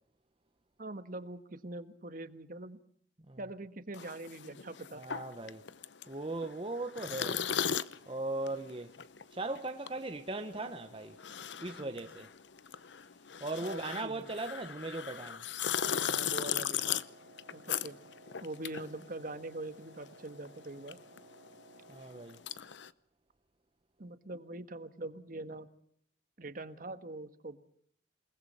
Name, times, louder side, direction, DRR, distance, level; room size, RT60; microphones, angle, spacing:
voice 1, 0.8-2.8 3.4-5.0 11.8-12.1 13.6-14.3 15.8-17.0 17.5-18.0 18.4-21.0 24.0-25.7 26.4-27.6, right 2 dB, 50° right, 1.5 m, -43 dB
sound 1, 3.9-19.7 20.0-22.9, left 8 dB, 75° left, 0.8 m, -38 dB
voice 2, 5.0-5.6 6.1-7.4 8.1-8.9 9.3-11.1 11.6-12.3 13.4-15.4 21.9-22.4, right 2 dB, 30° right, 1.1 m, -38 dB
Wind instrument woodwind instrument, 15.9-22.5, right 2 dB, 70° right, 4.1 m, -58 dB
28.5 x 19.5 x 5.7 m
head